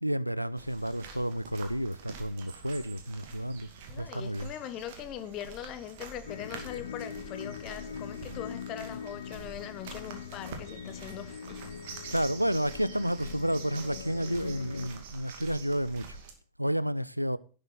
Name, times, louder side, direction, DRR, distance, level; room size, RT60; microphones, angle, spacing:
voice 1, 0.0-3.7 4.0-4.5 12.1-16.2 16.6-17.4, equal, 90° right, 0.4 m, -31 dB
sound 1, 0.6-16.3, right 5 dB, 55° right, 2.2 m, -47 dB
voice 2, 3.9-11.7, left 11 dB, 35° left, 1.2 m, -41 dB
sound 2, 6.2-14.9, left 7 dB, 65° left, 0.7 m, -42 dB
11.0 x 6.6 x 6.0 m
figure-of-eight pair, 90°, 0 cm